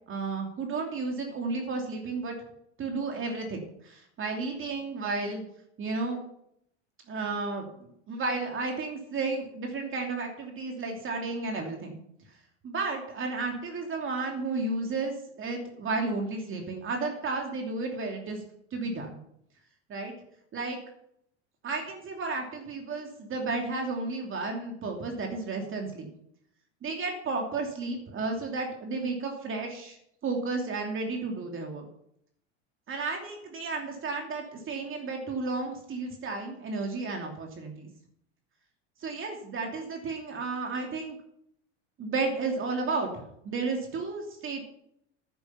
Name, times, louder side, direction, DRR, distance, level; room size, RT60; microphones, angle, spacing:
voice 1, 0.1-2.3 2.8-5.4 5.8-6.2 7.1-12.0 12.6-18.4 18.7-19.2 19.9-20.1 20.5-20.8 21.6-26.1 26.8-30.0 30.2-31.9 32.9-37.9 39.0-41.2 42.0-44.6, right 3 dB, 35° right, 2 dB, 2.8 m, -33 dB
10.5 x 10.0 x 5.7 m, 0.72 s
hypercardioid pair, 90°, 35 cm